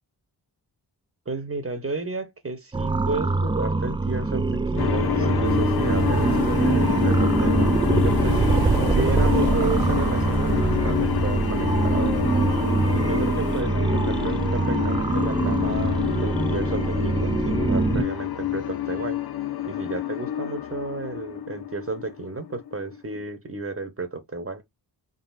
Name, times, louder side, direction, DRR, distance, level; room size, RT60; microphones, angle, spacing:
voice 1, 1.2-4.5 4.7-8.4 8.9-12.2 12.9-19.2 19.6-24.6, right 3 dB, 30° right, 1.2 m, -32 dB
sound 1, 2.7-18.0, right 3 dB, 10° right, 0.3 m, -23 dB
sound 2, 4.8-23.1, left 11 dB, 55° left, 0.8 m, -28 dB
sound 3, 5.4-13.6, right 5 dB, 55° right, 1.4 m, -41 dB
4.0 x 3.6 x 2.6 m
cardioid pair, 45°, 45 cm